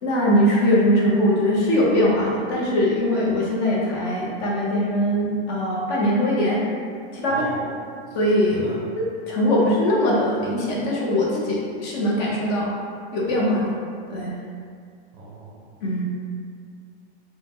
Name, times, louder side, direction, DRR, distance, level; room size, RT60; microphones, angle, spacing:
voice 1, 0.0-6.6 7.1-7.7 8.1-8.7 9.0-12.7 13.1-13.8 14.1-14.3 15.8-16.0, equal, 40° left, -5 dB, 0.6 m, -21 dB
voice 2, 15.2-15.6, right 3 dB, 30° right, -5 dB, 0.5 m, -37 dB
2.7 x 2.1 x 3.4 m, 2.3 s
supercardioid pair, 150°, 33 cm